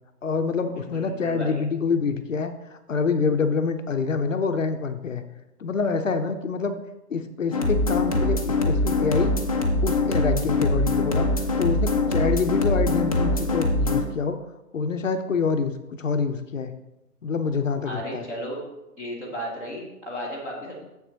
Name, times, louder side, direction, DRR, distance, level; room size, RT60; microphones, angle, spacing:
voice 1, 0.2-5.3 5.6-6.8 7.1-9.4 9.8-11.3 11.6-14.4 14.7-16.8 17.2-18.3, left 5 dB, 55° left, 8 dB, 0.8 m, -26 dB
voice 2, 0.7-1.6 17.8-18.6 19.0-20.8, equal, 5° right, -7 dB, 0.8 m, -34 dB
sound 1, 7.5-14.0, left 2 dB, 25° left, 0.6 m, -23 dB
7.3 x 7.0 x 4.0 m, 0.94 s
figure-of-eight pair, 140°, 47 cm